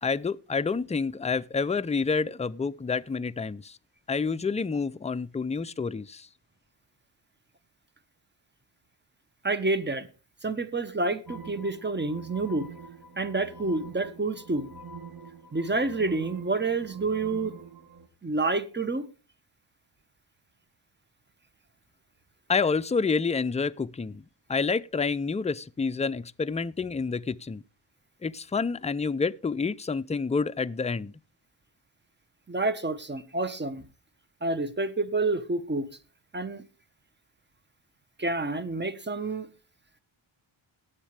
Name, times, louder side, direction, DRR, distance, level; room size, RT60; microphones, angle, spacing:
voice 1, 0.0-3.8 4.1-6.3 22.5-24.2 24.5-27.6 28.2-31.1, left 4 dB, 15° left, 0.4 m, -28 dB
voice 2, 9.4-10.1 10.4-12.7 13.2-14.7 15.5-17.5 18.2-19.1 32.5-33.9 34.4-35.9 36.3-36.6 38.2-39.5, right 3 dB, 20° right, 1.3 m, -28 dB
sound 1, 11.3-18.1, right 5 dB, 40° right, 2.1 m, -45 dB
19.0 x 7.4 x 3.3 m
cardioid pair, 60°, 49 cm